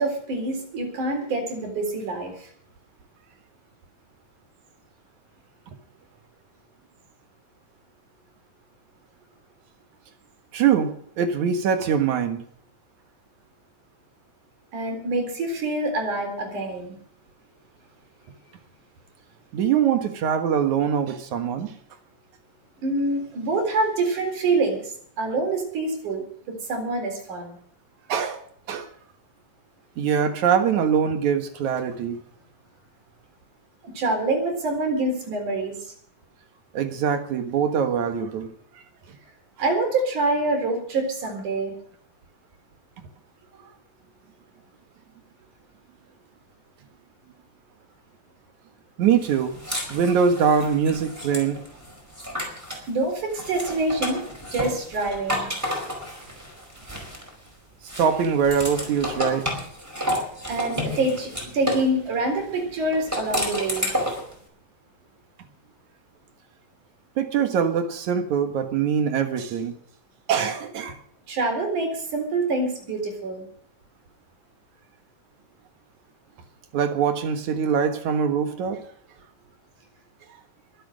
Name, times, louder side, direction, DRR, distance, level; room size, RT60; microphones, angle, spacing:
voice 1, 0.0-2.5 14.7-16.9 22.8-27.6 33.8-35.9 39.6-41.7 52.9-55.5 60.5-63.9 71.3-73.5, right 2 dB, 90° right, 3 dB, 5.4 m, -26 dB
voice 2, 10.5-12.4 19.5-21.7 28.1-28.4 28.7-28.9 30.0-32.2 36.7-38.5 49.0-49.6 49.9-51.6 58.0-59.5 67.2-69.8 70.3-71.0 76.7-78.8, right 7 dB, 75° right, 7 dB, 2.9 m, -23 dB
sound 1, 49.2-52.9 53.3-57.5 57.9-61.9 62.9-64.3, equal, 5° right, 4.6 m, -31 dB
22.5 x 8.3 x 6.4 m, 0.63 s
omnidirectional pair, 3.4 m